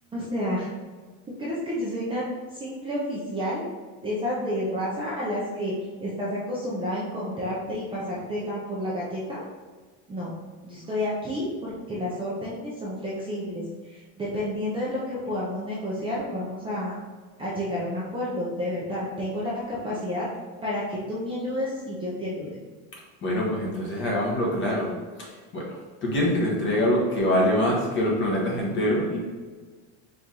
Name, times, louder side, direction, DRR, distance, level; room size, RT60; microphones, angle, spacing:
voice 1, 0.1-0.7 1.4-2.2 2.5-3.7 4.0-5.7 6.0-9.4 10.1-10.3 10.6-16.9 17.4-20.3 20.6-22.6, left 1 dB, 15° right, -7 dB, 0.6 m, -30 dB
voice 2, 23.2-29.2, left 1 dB, 30° left, -3 dB, 1.0 m, -25 dB
4.6 x 2.6 x 3.7 m, 1.4 s
cardioid pair, 150°, 41 cm